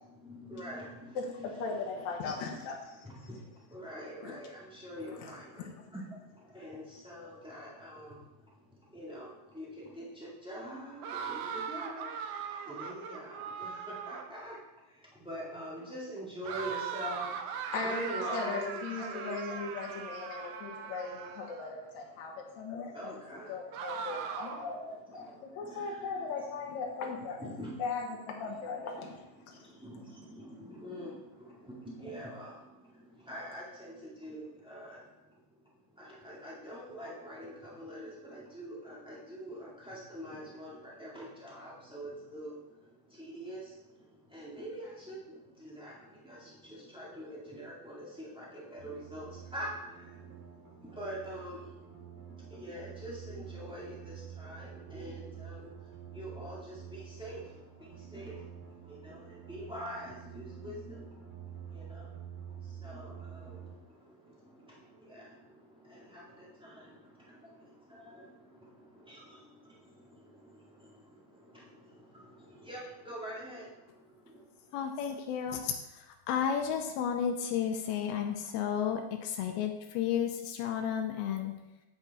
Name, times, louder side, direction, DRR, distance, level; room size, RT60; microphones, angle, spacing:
voice 1, 0.0-2.2 2.5-20.0 20.3-20.5 20.8-20.9 21.5-23.6 24.1-27.8 28.3-70.9 71.4-74.7, equal, 10° right, -7 dB, 0.3 m, -46 dB
voice 2, 1.2-3.1 4.2-4.3 5.2-5.3 5.6-5.7 17.7-23.1 23.5-24.6 25.6-27.5 27.8-29.1, left 4 dB, 60° left, 0 dB, 2.1 m, -38 dB
sound 1, 11.0-14.4 16.4-21.7 23.7-24.8, right 6 dB, 85° right, 1.7 m, -39 dB
sound 2, 48.8-63.7, right 8 dB, 30° right, 2.1 m, -48 dB
voice 3, 74.7-81.5, left 8 dB, 85° left, 4 dB, 2.6 m, -32 dB
8.3 x 7.9 x 4.1 m, 0.95 s
omnidirectional pair, 4.3 m